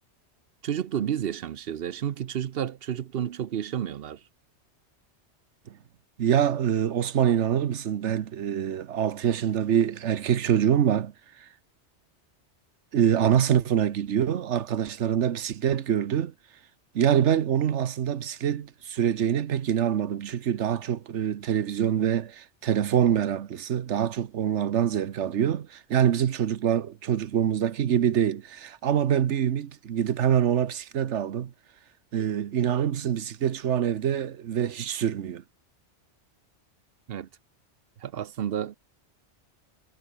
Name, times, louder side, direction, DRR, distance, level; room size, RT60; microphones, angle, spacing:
voice 1, 0.6-4.2 37.1-37.3 38.0-38.8, right 9 dB, 60° right, 0.9 m, -31 dB
voice 2, 6.2-11.1 11.4-11.5 12.9-16.3 16.9-31.5 32.1-35.4, right 9 dB, 80° right, 1.2 m, -25 dB
omnidirectional pair, 1.2 m